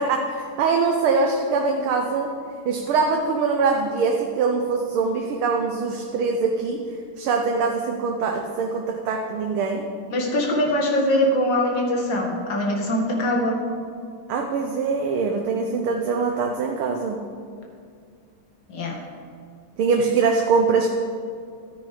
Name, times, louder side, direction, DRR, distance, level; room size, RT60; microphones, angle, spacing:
voice 1, 0.0-2.3 2.7-6.9 7.2-9.9 14.3-17.2 19.8-20.9, right 4 dB, 85° right, 2 dB, 1.7 m, -23 dB
voice 2, 10.1-13.6 18.7-18.9, left 1 dB, 60° left, -1 dB, 2.5 m, -22 dB
13.0 x 9.4 x 4.9 m, 2.2 s
omnidirectional pair, 2.3 m